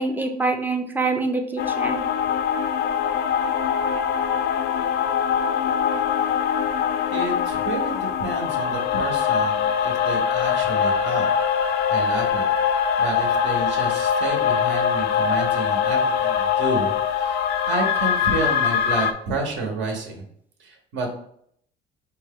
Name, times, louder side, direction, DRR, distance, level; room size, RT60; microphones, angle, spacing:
voice 1, 0.0-2.0, right 3 dB, 10° right, 4 dB, 0.5 m, -25 dB
sound 1, 1.6-19.1, left 7 dB, 55° left, 0.4 m, -23 dB
voice 2, 7.1-11.3 11.6-12.5 13.0-20.2 20.6-21.1, right 2 dB, 65° right, 2 dB, 1.0 m, -30 dB
4.2 x 2.2 x 3.6 m, 0.66 s
cardioid pair, 130°, 20 cm